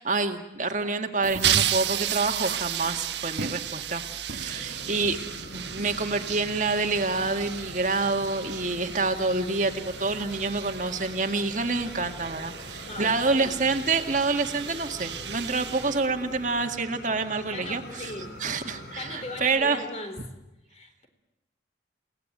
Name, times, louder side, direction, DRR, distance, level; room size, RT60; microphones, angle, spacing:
voice 1, 0.0-5.2 5.5-18.1 18.4-19.8, right 3 dB, 45° right, 5 dB, 1.9 m, -27 dB
sound 1, 1.2-16.6, right 9 dB, 80° right, 1.3 m, -33 dB
Fire, 4.5-19.5, left 1 dB, 80° left, 5.8 m, -44 dB
voice 2, 12.8-13.6 17.5-18.4 19.0-20.3 20.7-21.1, left 1 dB, 40° left, 7 dB, 4.0 m, -38 dB
30.0 x 18.0 x 9.2 m, 0.98 s
head